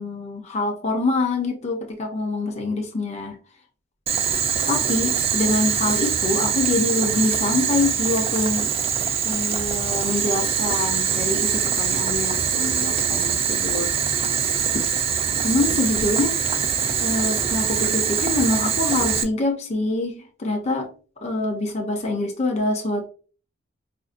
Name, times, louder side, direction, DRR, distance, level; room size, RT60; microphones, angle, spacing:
voice 1, 0.0-3.3 4.7-8.7 9.2-13.9 14.7-14.8 15.4-16.3 17.0-20.9 21.2-23.1, left 2 dB, 35° left, 1 dB, 0.5 m, -25 dB
Boiling, 4.1-19.2, right 7 dB, 30° right, 0.4 m, -23 dB
4.8 x 2.5 x 2.5 m, 0.38 s
head